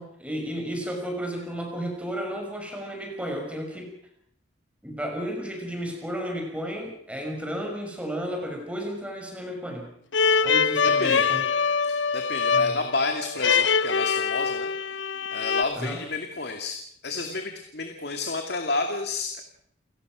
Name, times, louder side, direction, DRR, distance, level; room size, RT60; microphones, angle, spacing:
voice 1, 0.0-3.9 4.8-9.9 10.4-11.4 12.5-12.9 15.8-16.0, equal, 5° right, 2 dB, 5.9 m, -33 dB
sound 1, 10.1-15.6, left 5 dB, 80° left, 1.0 m, -24 dB
voice 2, 10.8-11.3 11.8-14.7 15.3-19.4, left 3 dB, 60° left, 5 dB, 2.3 m, -31 dB
29.5 x 17.5 x 6.2 m, 0.67 s
head